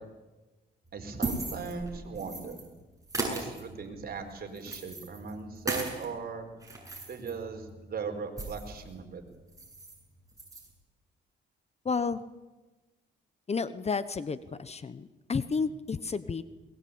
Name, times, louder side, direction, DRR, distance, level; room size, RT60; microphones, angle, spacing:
sound 1, 0.9-2.7 3.0-6.1 6.5-8.8 9.1-9.2 9.5-10.0 10.3-10.7, right 3 dB, 15° right, 7.6 m, -37 dB
voice 1, 0.9-2.6 3.1-6.5 7.1-9.2, right 5 dB, 50° right, 4 dB, 4.5 m, -39 dB
voice 2, 11.8-12.2 13.5-16.4, left 5 dB, 30° left, 15 dB, 1.0 m, -31 dB
22.0 x 20.0 x 8.7 m, 1.2 s
cardioid pair, 90°, 20 cm